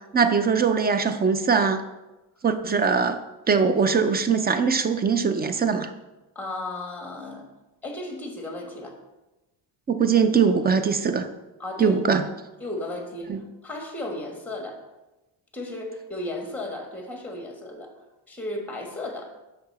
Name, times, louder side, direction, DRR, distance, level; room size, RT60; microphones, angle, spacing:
voice 1, 0.1-1.8 2.4-3.2 3.5-5.9 9.9-11.3 11.8-12.2 13.3-13.4, right 5 dB, 20° right, 9 dB, 0.4 m, -21 dB
voice 2, 6.3-7.4 7.8-9.0 11.6-12.2 12.6-13.3 13.6-14.8 15.5-17.9 18.3-19.4, left 1 dB, 5° left, 3 dB, 1.3 m, -34 dB
5.8 x 5.7 x 4.1 m, 1.0 s
cardioid pair, 105°, 45 cm